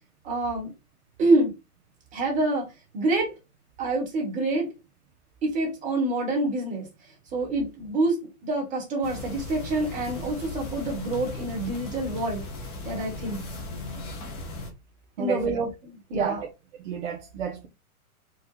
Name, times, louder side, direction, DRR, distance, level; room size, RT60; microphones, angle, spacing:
voice 1, 0.2-0.7 1.2-1.5 2.1-2.7 2.9-3.3 3.8-4.7 5.4-6.8 7.3-12.4 12.8-13.4 15.2-16.4, right 2 dB, 15° right, 1.6 m, -26 dB
sound 1, 9.0-14.7, left 2 dB, 15° left, 0.6 m, -37 dB
voice 2, 15.2-15.6 16.1-16.4 16.8-17.7, right 7 dB, 50° right, 1.1 m, -30 dB
4.6 x 2.5 x 4.7 m
hypercardioid pair, 155°, 44 cm